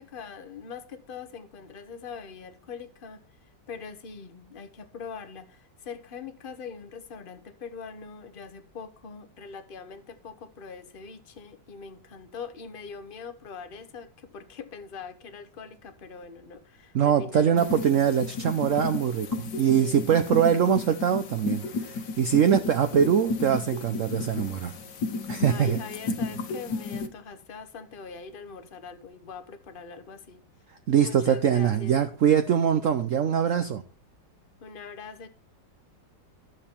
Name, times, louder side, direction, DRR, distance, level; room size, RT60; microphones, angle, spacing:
voice 1, 0.0-3.2 3.7-17.7 19.3-20.0 25.4-30.4 31.0-32.0 34.6-35.3, left 5 dB, 40° left, 0.9 m, -42 dB
voice 2, 16.9-24.7 25.3-25.8 30.9-33.8, right 8 dB, 60° right, 0.9 m, -23 dB
sound 1, 17.6-27.1, left 4 dB, 70° left, 1.7 m, -33 dB
12.0 x 7.2 x 4.4 m
omnidirectional pair, 2.0 m